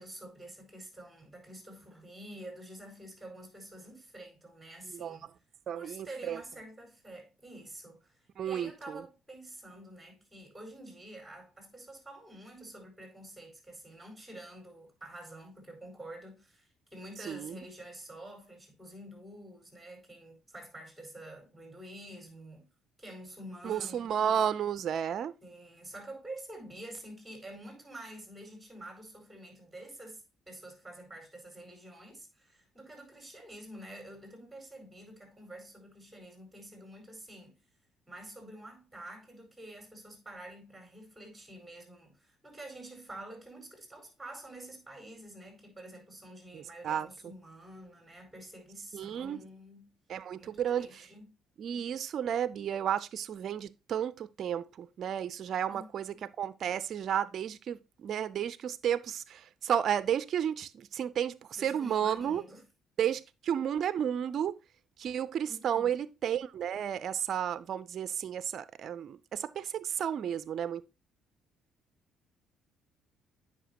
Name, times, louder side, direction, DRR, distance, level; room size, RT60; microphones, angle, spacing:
voice 1, 0.0-5.2 5.7-22.7 23.0-24.1 25.4-37.6 38.1-50.0 50.3-51.2 55.7-56.3 61.5-62.7 65.5-66.0, right 1 dB, 5° right, 4.9 m, -48 dB
voice 2, 4.9-5.3 5.7-6.4 8.4-9.0 17.3-17.5 23.6-25.4 46.5-47.3 48.9-49.4 50.1-51.1 51.6-62.4 63.0-64.6 65.0-70.8, right 9 dB, 60° right, 0.4 m, -32 dB
9.1 x 5.8 x 2.9 m
supercardioid pair, 70°, 0 cm